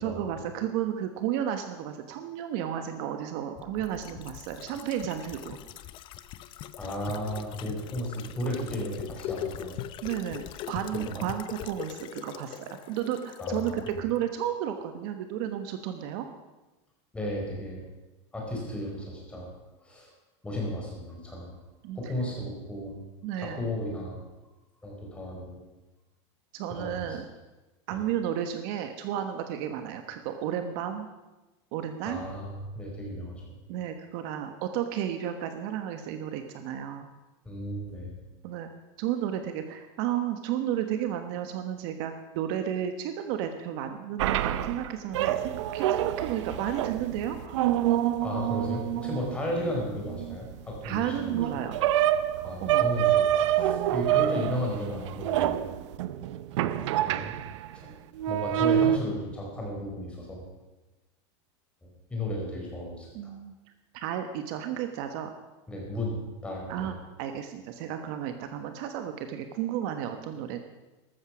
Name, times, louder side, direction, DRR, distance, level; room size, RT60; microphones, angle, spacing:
voice 1, 0.0-5.6 10.0-16.3 21.8-22.1 23.2-23.7 26.5-27.3 27.9-31.1 31.7-32.2 33.7-37.1 38.4-38.7 39.0-47.6 50.8-51.8 52.4-52.9 53.6-54.0 63.1-63.5 63.9-65.3 66.7-66.9 67.2-70.6, right 10 dB, 55° right, 7 dB, 1.3 m, -33 dB
sound 1, 3.6-13.9 14.2-14.3, left 12 dB, 35° left, 0.7 m, -41 dB
voice 2, 6.8-9.8 10.9-11.2 13.4-14.0 17.1-17.8 18.3-19.5 19.8-20.1 20.4-21.5 21.9-23.0 23.4-24.2 24.8-25.6 26.7-27.2 32.1-33.4 37.4-38.2 48.2-51.3 52.4-55.7 57.0-57.4 57.7-57.9 58.3-60.4 61.8-63.3 65.7-66.9, equal, 5° left, -2 dB, 4.5 m, -34 dB
sound 2, 44.2-57.7 58.2-59.0, right 12 dB, 80° right, 0.8 m, -27 dB
13.5 x 13.0 x 6.2 m, 1.1 s
supercardioid pair, 160°, 15 cm